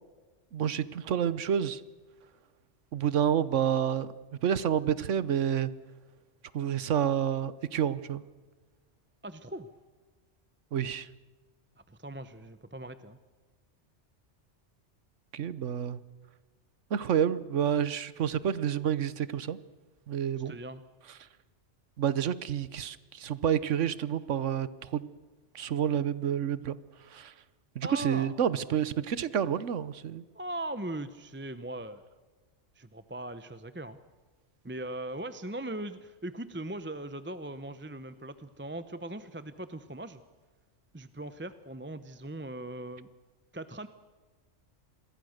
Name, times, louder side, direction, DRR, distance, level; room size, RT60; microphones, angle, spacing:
voice 1, 0.5-1.8 2.9-4.1 4.4-5.7 6.5-8.2 10.7-11.1 15.3-16.0 16.9-19.6 20.1-20.5 22.0-25.1 25.5-26.8 27.1-27.3 27.7-30.2, right 9 dB, 85° right, 17 dB, 1.3 m, -29 dB
voice 2, 9.2-9.7 11.9-13.2 20.4-20.8 27.8-28.3 30.3-32.0 32.8-34.0 34.6-40.2 40.9-43.1 43.5-43.9, right 1 dB, 10° right, 12 dB, 0.7 m, -39 dB
28.0 x 21.5 x 6.5 m, 1.3 s
omnidirectional pair, 1.2 m